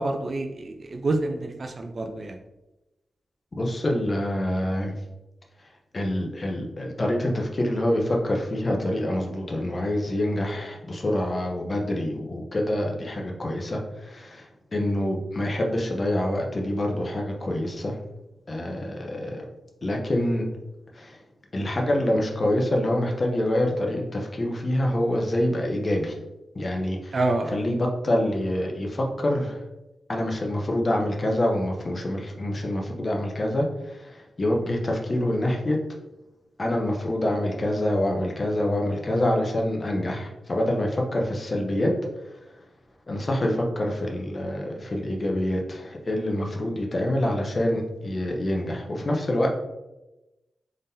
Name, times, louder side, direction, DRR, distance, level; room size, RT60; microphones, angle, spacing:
voice 1, 0.0-2.4 27.1-27.6, right 2 dB, 50° right, 5 dB, 0.6 m, -27 dB
voice 2, 3.5-4.9 5.9-18.0 18.5-19.4 19.8-20.5 20.9-21.2 21.5-26.2 26.5-27.2 27.5-29.6 30.1-35.8 36.6-42.0 42.2-42.5 43.1-49.5, left 1 dB, 40° left, 1 dB, 0.8 m, -26 dB
3.7 x 3.6 x 2.7 m, 0.98 s
cardioid pair, 75°, 0 cm